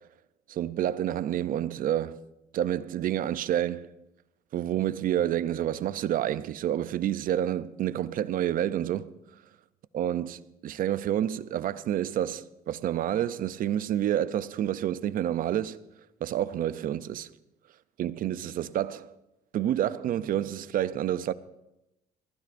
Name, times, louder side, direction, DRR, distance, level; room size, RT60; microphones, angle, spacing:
voice 1, 0.5-2.2 2.5-3.9 4.5-9.1 9.9-15.8 16.2-17.3 18.0-19.1 19.5-21.3, right 11 dB, 55° right, 0.5 m, -29 dB
22.5 x 15.5 x 2.6 m
cardioid pair, 110°, 17 cm